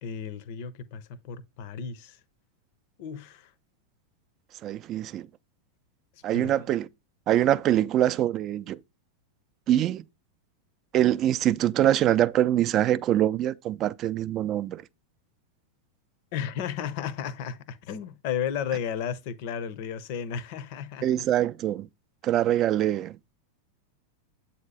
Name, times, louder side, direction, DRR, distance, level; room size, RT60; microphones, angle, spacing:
voice 1, 0.0-2.2 3.0-3.5 6.3-6.5 16.3-21.3, left 8 dB, 45° left, 0.6 m, -34 dB
voice 2, 4.6-5.3 6.2-6.9 7.3-8.8 9.7-10.0 10.9-14.8 21.0-21.9 22.2-23.2, right 12 dB, 35° right, 0.4 m, -24 dB
7.9 x 2.8 x 5.4 m
figure-of-eight pair, 90°, 0 cm